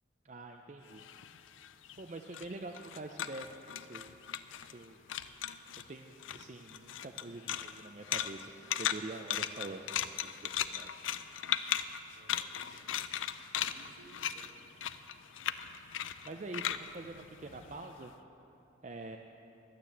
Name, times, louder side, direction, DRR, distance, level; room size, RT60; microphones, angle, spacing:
voice 1, 0.2-1.0 2.0-4.2 4.7-5.0 5.9-10.9 16.2-18.1 18.8-19.2, right 2 dB, 35° right, 3 dB, 0.5 m, -45 dB
sound 1, 0.9-4.8 5.1-5.9 6.2-18.0, left 10 dB, 80° left, 0.4 m, -37 dB
voice 2, 12.1-12.9 13.6-14.8, right 1 dB, 70° right, 0 dB, 1.7 m, -59 dB
12.0 x 9.4 x 7.2 m, 3.0 s
head